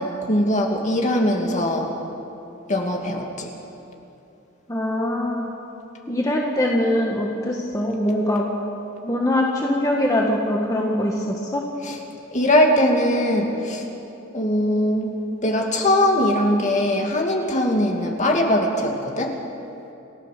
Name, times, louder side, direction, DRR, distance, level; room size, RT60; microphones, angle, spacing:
voice 1, 0.0-1.9 2.7-3.5 11.8-12.0 12.3-13.8 14.3-15.1 15.4-19.3, left 1 dB, 40° left, 1 dB, 2.5 m, -21 dB
voice 2, 4.7-5.5 6.1-8.5 9.0-11.6, left 1 dB, 15° left, -2 dB, 1.7 m, -22 dB
29.5 x 14.0 x 6.8 m, 2.8 s
head